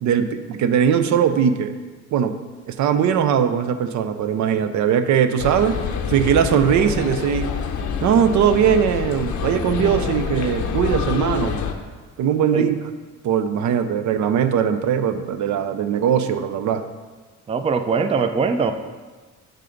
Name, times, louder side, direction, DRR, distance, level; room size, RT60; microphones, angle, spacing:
voice 1, 0.0-1.8 2.1-2.4 2.7-5.8 6.1-7.5 8.0-11.6 12.2-12.8 13.2-16.8, right 8 dB, 70° right, 9 dB, 0.5 m, -20 dB
sound 1, 5.4-11.7, left 6 dB, 70° left, 0.7 m, -26 dB
voice 2, 17.5-18.7, right 5 dB, 20° right, 8 dB, 0.4 m, -21 dB
7.4 x 3.4 x 5.2 m, 1.3 s
cardioid pair, 90°, 30 cm